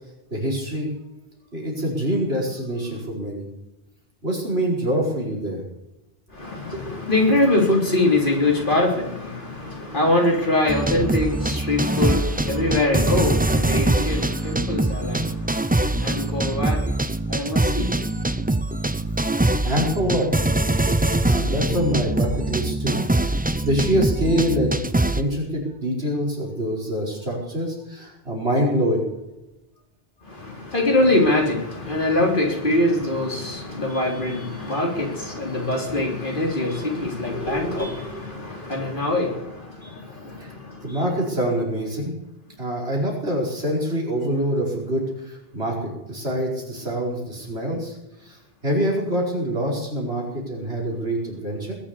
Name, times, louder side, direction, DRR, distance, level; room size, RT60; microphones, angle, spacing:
voice 1, 0.3-0.9 1.5-3.5 4.2-5.6 18.5-19.4 19.6-20.3 20.8-23.0 23.3-24.8 25.1-29.1 40.3-40.5 40.8-42.1 42.6-48.0 48.2-48.4 48.6-51.7, equal, 85° right, -2 dB, 5.3 m, -25 dB
voice 2, 6.3-18.3 30.2-41.0, left 2 dB, 55° left, 0 dB, 3.7 m, -23 dB
sound 1, 10.7-25.2, right 1 dB, 10° right, 0.5 m, -23 dB
20.5 x 7.5 x 8.4 m, 0.94 s
omnidirectional pair, 1.0 m